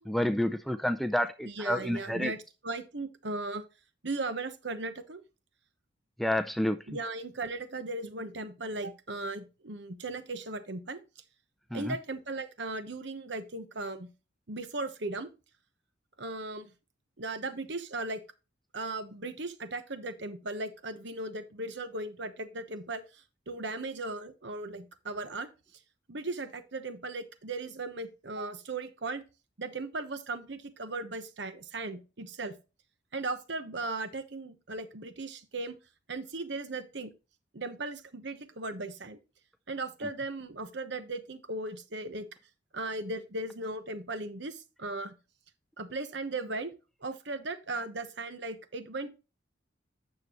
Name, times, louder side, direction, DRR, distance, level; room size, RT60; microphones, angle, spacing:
voice 1, 0.1-2.3 6.2-6.8 11.7-11.9, left 1 dB, ahead, 8 dB, 0.4 m, -29 dB
voice 2, 1.4-3.6 4.0-5.2 6.9-11.0 11.7-14.1 14.5-15.3 16.2-16.7 17.2-18.2 18.7-25.5 26.1-29.2 29.6-32.6 33.1-35.8 36.1-37.1 37.5-39.2 39.7-42.3 42.7-45.2 45.8-46.7 47.0-49.1, right 2 dB, 60° right, 9 dB, 1.0 m, -37 dB
9.5 x 6.6 x 3.1 m, 0.30 s
head